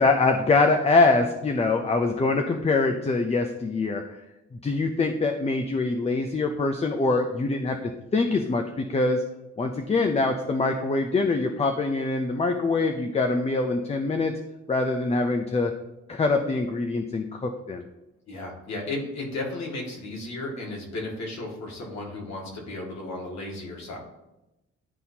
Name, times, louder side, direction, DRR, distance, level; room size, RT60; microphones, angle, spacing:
voice 1, 0.0-4.0 4.6-9.2 9.6-14.3 14.7-15.7 16.1-17.9, left 3 dB, 20° left, 5 dB, 0.5 m, -24 dB
voice 2, 18.3-24.0, left 2 dB, 65° left, -1 dB, 2.1 m, -34 dB
11.0 x 4.1 x 2.8 m, 0.96 s
cardioid pair, 90°, 30 cm